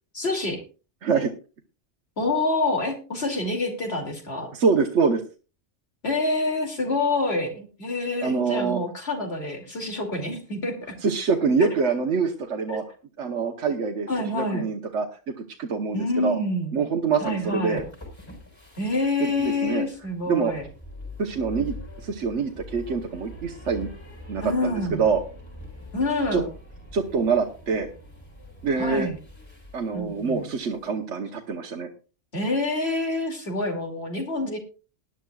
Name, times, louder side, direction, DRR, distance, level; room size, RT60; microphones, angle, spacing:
voice 1, 0.1-0.6 2.2-4.5 6.0-11.0 12.7-12.8 14.1-14.6 15.9-16.8 17.2-17.8 18.8-20.6 24.4-25.0 25.9-26.5 28.8-29.2 29.9-30.5 32.3-34.6, left 2 dB, 60° left, 3 dB, 2.9 m, -27 dB
voice 2, 1.0-1.3 4.5-5.2 8.2-8.8 11.0-12.8 13.2-15.1 15.4-16.4 16.7-17.8 19.2-19.8 20.3-20.5 21.2-23.9 24.3-25.2 26.3-26.4 26.9-27.9 28.6-29.1 29.7-31.9, right 5 dB, 80° right, 3 dB, 1.4 m, -25 dB
sound 1, 17.1-30.9, left 2 dB, 20° left, 4.1 m, -44 dB
19.0 x 10.5 x 2.3 m, 0.34 s
omnidirectional pair, 1.2 m